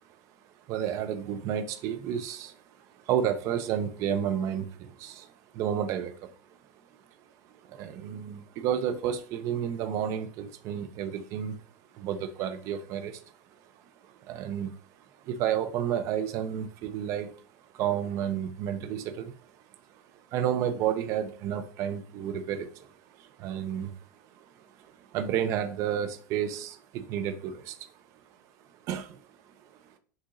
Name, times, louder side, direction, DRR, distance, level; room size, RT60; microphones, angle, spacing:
voice 1, 0.7-2.6 3.1-5.3 5.5-6.3 7.7-11.6 12.0-13.2 14.3-14.7 15.3-17.3 17.7-19.3 20.3-22.9 23.2-23.9 24.8-27.8 28.9-29.2, right 9 dB, 30° right, 0.5 m, -31 dB
6.3 x 2.9 x 2.5 m
supercardioid pair, 175°, 10 cm